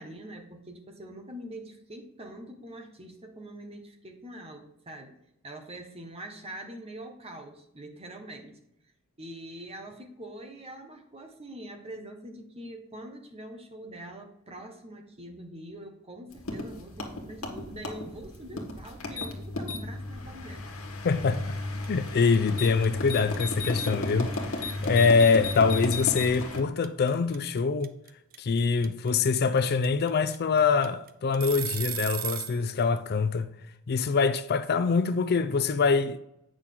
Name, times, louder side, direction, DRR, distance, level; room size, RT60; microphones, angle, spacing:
voice 1, 0.0-5.2 5.4-8.6 9.2-20.6, right 1 dB, 30° right, 1.4 m, -44 dB
sound 1, 16.3-26.6, left 2 dB, 70° left, 1.6 m, -34 dB
voice 2, 21.0-21.6 21.9-27.9 28.4-33.5 33.9-36.2, left 5 dB, 50° left, 0.5 m, -24 dB
sound 2, 21.3-21.6 21.8-32.6, right 11 dB, 45° right, 0.6 m, -36 dB
8.9 x 6.3 x 3.8 m
head